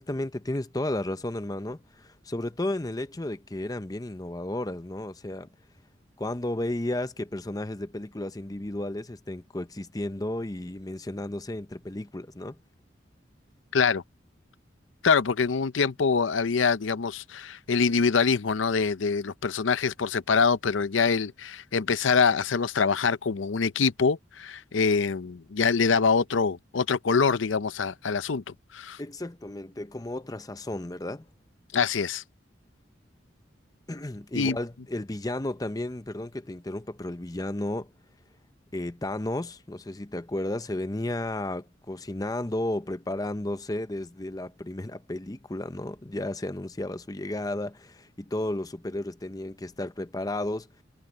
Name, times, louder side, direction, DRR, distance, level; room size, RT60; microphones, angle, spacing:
voice 1, 0.0-5.5 6.2-12.6 29.0-31.3 33.9-37.9 38.7-50.7, left 1 dB, 20° left, 0.7 m, -33 dB
voice 2, 13.7-14.0 15.0-29.0 31.7-32.2 34.3-34.6, left 5 dB, 85° left, 0.6 m, -25 dB
head